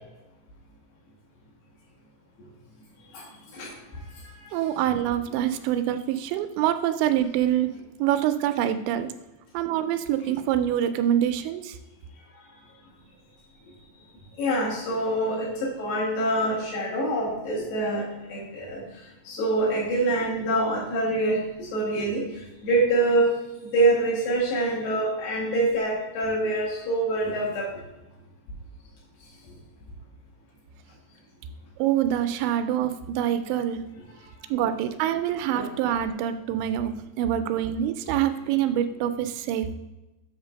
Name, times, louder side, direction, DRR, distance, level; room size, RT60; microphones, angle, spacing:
voice 1, 4.5-7.7 8.0-9.1 9.5-11.8 31.8-33.8 34.5-39.7, right 11 dB, 85° right, 9 dB, 2.8 m, -25 dB
voice 2, 14.4-18.8 19.3-22.2 22.6-23.3 23.6-27.6 35.5-35.7, right 2 dB, 65° left, -5 dB, 4.2 m, -25 dB
8.0 x 3.8 x 6.3 m, 1.0 s
omnidirectional pair, 5.2 m